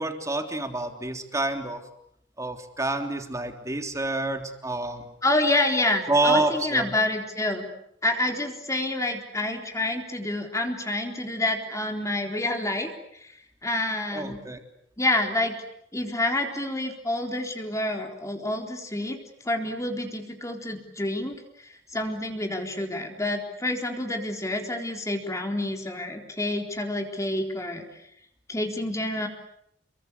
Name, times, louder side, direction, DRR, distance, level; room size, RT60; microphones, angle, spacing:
voice 1, 0.0-1.8 2.4-5.1 6.1-6.9 14.1-14.6, right 2 dB, 15° right, 5 dB, 3.4 m, -27 dB
voice 2, 5.2-7.7 8.0-13.3 13.6-14.4 15.0-15.6 15.9-19.2 19.4-21.4 21.9-27.8 28.5-29.3, left 1 dB, 15° left, 3 dB, 3.9 m, -28 dB
30.0 x 23.0 x 8.5 m, 0.76 s
head